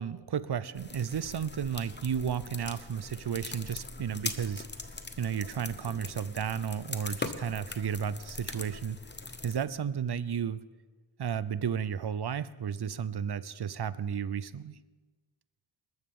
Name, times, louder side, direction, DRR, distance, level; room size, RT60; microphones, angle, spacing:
voice 1, 0.0-4.7 5.2-9.0 9.4-10.6 11.2-14.8, right 7 dB, 55° right, 16 dB, 0.7 m, -33 dB
sound 1, 0.8-9.7, left 3 dB, 25° left, 1.0 m, -41 dB
20.5 x 12.5 x 3.8 m, 1.3 s
cardioid pair, 55°, 47 cm